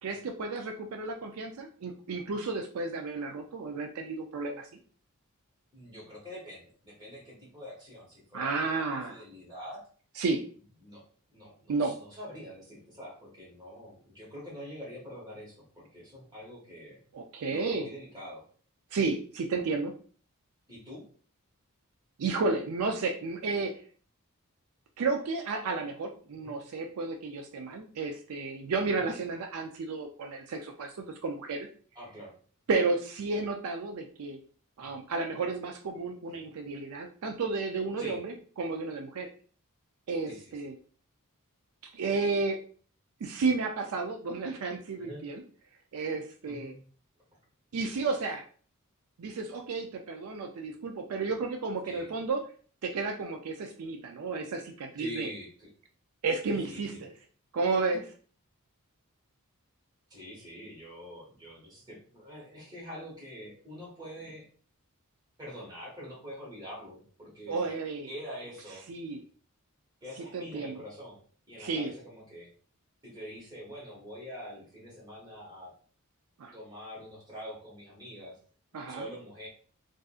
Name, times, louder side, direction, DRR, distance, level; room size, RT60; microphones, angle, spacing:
voice 1, 0.0-4.7 8.3-9.2 10.2-10.4 11.7-12.0 17.1-17.9 18.9-19.9 22.2-23.7 25.0-30.9 31.2-31.7 32.7-34.4 34.8-39.3 40.1-40.7 41.9-42.6 43.2-45.4 45.9-46.7 47.7-48.4 49.2-52.4 52.8-55.3 56.2-57.1 57.5-58.1 67.5-68.1 68.9-69.2 70.3-70.8 71.6-71.9 76.4-76.5 78.7-79.0, right 3 dB, 70° right, 3 dB, 0.4 m, -32 dB
voice 2, 5.7-9.8 10.8-11.0 11.3-17.0 17.5-18.4 20.7-21.0 26.3-26.5 29.0-29.1 31.9-32.3 34.8-34.9 36.3-36.4 38.0-38.2 40.3-40.4 45.0-45.2 46.5-46.8 51.8-52.1 55.0-55.7 56.4-57.0 60.1-64.4 65.4-67.6 68.1-68.8 70.0-71.2 71.5-72.5 73.0-75.7 76.5-78.4 78.9-79.5, equal, 20° right, -5 dB, 1.5 m, -45 dB
3.6 x 2.6 x 2.4 m, 0.43 s
head